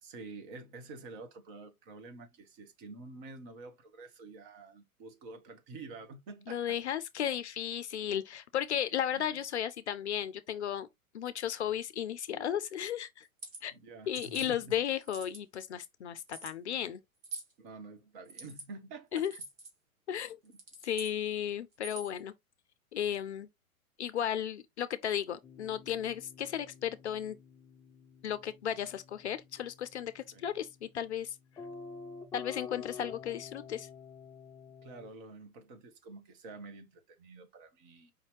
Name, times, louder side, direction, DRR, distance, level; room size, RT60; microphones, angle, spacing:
voice 1, 0.0-6.8 9.1-9.4 13.7-14.8 17.6-19.3 20.4-20.6 30.3-30.5 34.8-38.1, right 3 dB, 35° right, 1.0 m, -48 dB
voice 2, 6.5-10.9 11.1-13.3 13.6-13.7 14.1-17.0 19.1-19.3 20.1-20.4 20.8-22.3 22.9-23.5 24.0-27.4 28.2-31.4 32.3-33.9, left 10 dB, 55° left, 0.5 m, -34 dB
sound 1, 13.2-13.6 14.1-14.5 15.0-15.5 16.3-16.5 17.2-17.5 18.2-18.7 19.2-19.7 20.4-21.1 21.7-22.2, right 3 dB, 70° right, 1.9 m, -45 dB
sound 2, 25.4-35.1, left 5 dB, 10° left, 0.6 m, -49 dB
5.0 x 2.8 x 3.1 m
figure-of-eight pair, 105°, 42 cm